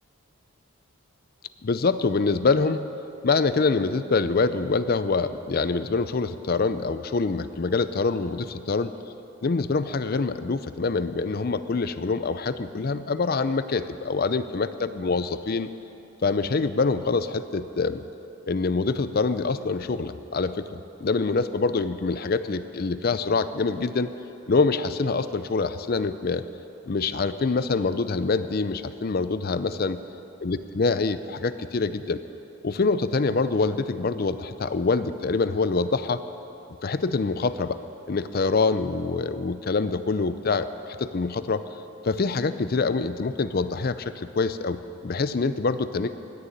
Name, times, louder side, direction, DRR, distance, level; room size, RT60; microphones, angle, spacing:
voice 1, 1.6-2.9 3.2-8.9 9.4-15.7 16.2-18.0 18.5-24.1 24.5-26.4 26.9-30.0 30.4-32.2 32.6-36.2 36.8-40.7 41.0-41.6 42.0-46.2, left 4 dB, 45° left, 12 dB, 0.5 m, -25 dB
16.5 x 6.7 x 9.8 m, 2.9 s
head